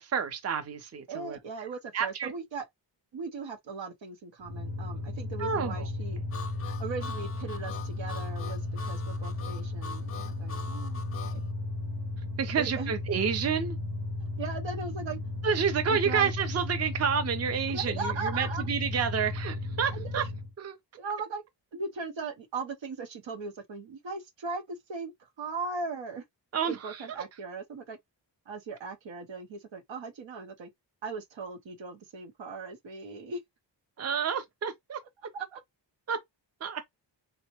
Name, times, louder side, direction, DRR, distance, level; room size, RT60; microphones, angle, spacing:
voice 1, 0.0-1.4 1.9-2.3 5.4-5.9 12.4-13.8 15.4-20.2 20.6-20.8 26.5-27.0 34.0-35.0 36.1-36.2 36.6-36.8, right 7 dB, 35° right, 0.5 m, -29 dB
voice 2, 1.1-2.6 3.1-6.2 6.8-8.6 8.9-11.4 12.6-12.9 14.4-15.2 15.9-16.3 17.7-18.7 19.9-20.3 21.0-21.4 21.7-26.2 26.6-28.0 28.5-30.7 31.0-33.4 35.3-35.6, right 4 dB, 85° right, 0.9 m, -38 dB
sound 1, 4.4-20.5, left 2 dB, 70° right, 1.1 m, -35 dB
Harmonica, 6.3-11.4, left 5 dB, 35° left, 0.4 m, -43 dB
4.0 x 2.1 x 2.9 m
wide cardioid pair, 175°, 44 cm